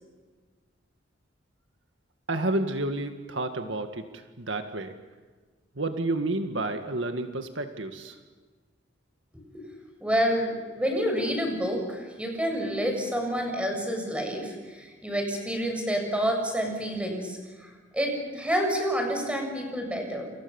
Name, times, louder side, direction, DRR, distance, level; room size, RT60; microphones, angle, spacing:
voice 1, 2.3-4.9 5.8-8.2, right 2 dB, 70° right, 7 dB, 1.9 m, -30 dB
voice 2, 10.0-20.3, equal, 5° right, 3 dB, 7.3 m, -28 dB
29.5 x 28.0 x 7.1 m, 1.4 s
head